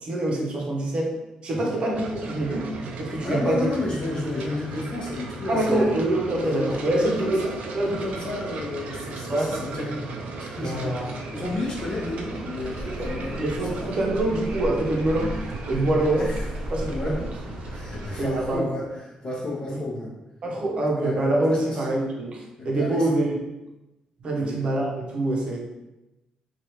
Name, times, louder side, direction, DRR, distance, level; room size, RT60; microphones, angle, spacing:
voice 1, 0.0-1.2 1.4-2.7 3.0-3.7 5.5-7.4 7.7-7.9 9.3-9.6 10.6-11.1 13.0-16.3 16.7-17.2 18.2-18.6 20.4-23.3 24.2-25.6, right 1 dB, 50° right, -1 dB, 0.7 m, -25 dB
sound 1, 1.9-18.2, right 3 dB, 85° right, 0.4 m, -37 dB
voice 2, 3.2-6.0 6.4-14.0 16.2-16.5 16.9-17.2 17.7-20.1 20.9-21.8 22.6-23.1 24.4-24.6, left 2 dB, 35° left, -4 dB, 0.8 m, -32 dB
sound 2, 11.4-18.6, equal, 5° right, 0.8 m, -35 dB
3.1 x 2.4 x 2.9 m, 0.97 s
cardioid pair, 110°, 2 cm